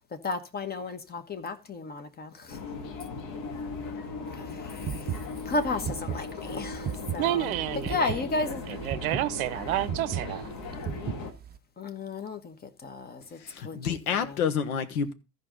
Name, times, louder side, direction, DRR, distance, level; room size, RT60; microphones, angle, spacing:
voice 1, 0.2-2.6 4.5-4.9 5.5-7.5 7.9-8.6 11.8-12.5 12.8-13.4 13.6-14.0, left 3 dB, 20° left, 1.2 m, -33 dB
sound 1, 2.5-11.3, left 4 dB, 40° left, 1.8 m, -38 dB
sound 2, 4.8-11.6, right 9 dB, 20° right, 0.7 m, -35 dB
voice 2, 7.2-10.5, right 14 dB, 60° right, 0.8 m, -30 dB
voice 3, 13.4-15.1, left 7 dB, 65° left, 1.4 m, -29 dB
14.5 x 5.3 x 3.9 m
figure-of-eight pair, 75°, 48 cm